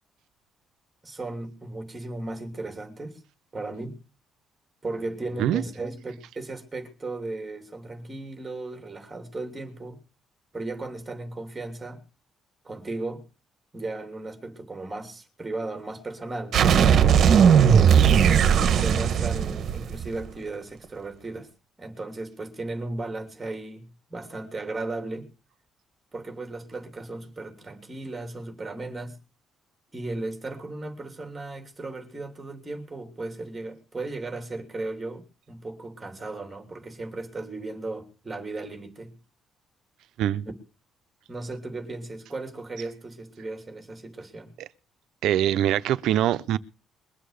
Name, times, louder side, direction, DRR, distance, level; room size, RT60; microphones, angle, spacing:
voice 1, 1.0-3.2 3.5-4.0 4.8-10.0 10.5-12.0 12.6-13.2 13.7-16.7 17.6-18.4 18.7-21.5 21.8-23.8 24.1-25.3 26.1-29.2 29.9-39.1 41.3-44.5, right 2 dB, 15° right, 3.1 m, -36 dB
sound 1, 16.5-20.2, right 7 dB, 50° right, 1.3 m, -18 dB
voice 2, 45.2-46.6, right 12 dB, 75° right, 0.7 m, -23 dB
22.0 x 7.6 x 6.6 m
cardioid pair, 175°, 0 cm